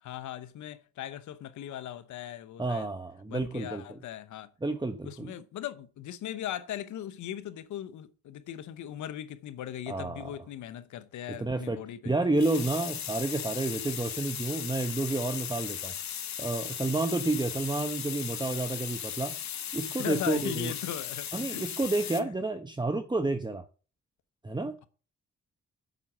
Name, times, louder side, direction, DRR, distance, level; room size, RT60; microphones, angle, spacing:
voice 1, 0.0-2.9 3.3-4.5 5.0-12.1 20.0-21.7 22.0-22.3, left 11 dB, 90° left, 0.9 m, -39 dB
voice 2, 2.6-4.0 4.6-5.3 9.9-10.3 11.4-11.8 12.0-15.9 16.4-19.4 19.7-20.7 21.3-23.6 24.4-24.8, right 2 dB, 15° right, 1.1 m, -30 dB
sound 1, 12.4-22.2, left 9 dB, 70° left, 1.3 m, -37 dB
7.8 x 6.0 x 7.4 m
cardioid pair, 60°, 29 cm